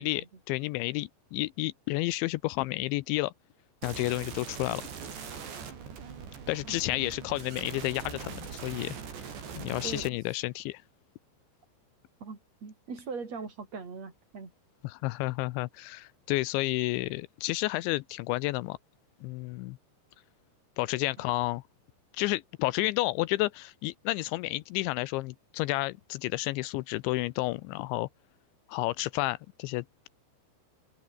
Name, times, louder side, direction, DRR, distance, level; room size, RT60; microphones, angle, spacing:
voice 1, 0.0-3.3 3.8-4.8 6.5-8.9 9.6-10.8 14.8-18.8 19.2-19.8 20.8-21.6 22.1-28.1 28.7-30.1, left 20 dB, 85° left, 3.0 m, -31 dB
sound 1, 3.8-10.1, right 6 dB, 70° right, 6.9 m, -42 dB
voice 2, 9.8-10.4 12.2-14.5, right 5 dB, 35° right, 6.0 m, -41 dB
omnidirectional pair, 5.3 m